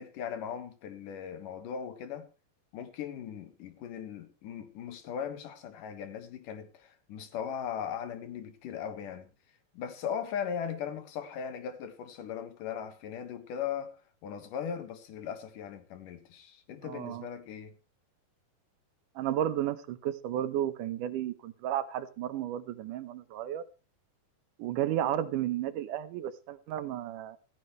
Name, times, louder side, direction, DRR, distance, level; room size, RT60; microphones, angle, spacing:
voice 1, 0.0-2.3 2.7-9.3 9.7-14.0 14.2-17.8, left 8 dB, 90° left, 3.1 m, -38 dB
voice 2, 16.8-17.3 19.2-23.6 24.6-27.4, right 11 dB, 80° right, 2.5 m, -33 dB
14.5 x 14.5 x 3.1 m
omnidirectional pair, 3.6 m